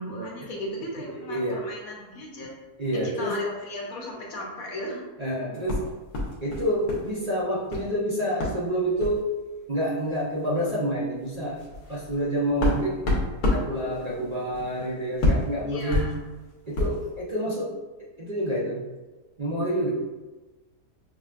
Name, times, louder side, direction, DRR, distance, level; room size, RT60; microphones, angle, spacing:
voice 1, 0.0-2.5 2.9-5.1 15.7-16.2, left 1 dB, 70° left, -2 dB, 1.3 m, -35 dB
voice 2, 1.2-1.6 2.8-3.3 5.2-5.8 6.4-9.3 9.7-11.6 11.9-13.0 13.4-16.1 16.7-17.7 18.2-18.8 19.4-19.9, right 1 dB, 50° right, -7 dB, 0.5 m, -28 dB
sound 1, 5.7-7.1 7.3-7.9 8.4-8.6 9.0-9.2 10.1-10.2 10.5-10.7 11.2-17.1, left 2 dB, 90° left, 1.4 m, -28 dB
5.9 x 2.1 x 2.4 m, 1.2 s
omnidirectional pair, 1.6 m